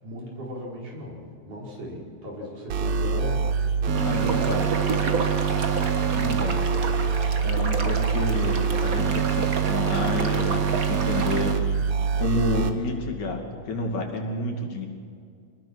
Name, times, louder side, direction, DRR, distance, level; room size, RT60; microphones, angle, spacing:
voice 1, 0.0-5.4, left 1 dB, 80° right, -3 dB, 6.5 m, -37 dB
sound 1, 2.7-12.7, right 6 dB, 65° right, 2.6 m, -25 dB
sound 2, 3.9-11.5, right 4 dB, 45° right, 1.1 m, -32 dB
voice 2, 4.0-4.7 6.1-6.7 7.4-11.8 12.1-14.9, left 3 dB, 70° left, 2 dB, 3.9 m, -30 dB
26.0 x 20.0 x 6.3 m, 2.2 s
omnidirectional pair, 3.5 m